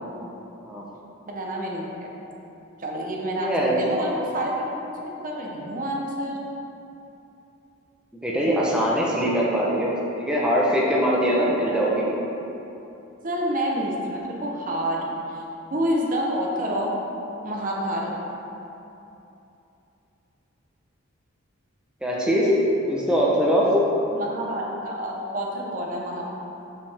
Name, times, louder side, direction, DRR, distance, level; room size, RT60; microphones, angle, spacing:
voice 1, 1.3-2.1 2.8-6.4 10.9-11.0 11.6-11.8 13.2-15.4 15.7-17.1 17.4-18.1 24.1-26.3, equal, 40° right, -1 dB, 0.8 m, -28 dB
voice 2, 3.4-3.8 8.2-12.0 22.0-23.8, equal, 5° right, -6 dB, 0.7 m, -22 dB
6.7 x 5.7 x 3.4 m, 2.9 s
head